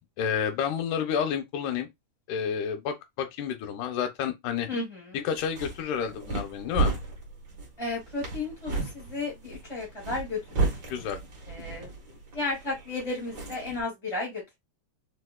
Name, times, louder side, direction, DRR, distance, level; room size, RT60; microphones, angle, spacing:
voice 1, 0.2-1.9 2.3-4.7 5.2-6.9 10.9-11.2, left 8 dB, 85° left, 2.0 m, -30 dB
voice 2, 4.7-5.2 7.8-10.7 11.5-11.9 12.3-14.4, left 3 dB, 25° right, 0.7 m, -33 dB
sound 1, 5.3-13.8, right 3 dB, 55° right, 1.1 m, -34 dB
4.7 x 2.3 x 2.2 m
omnidirectional pair, 3.5 m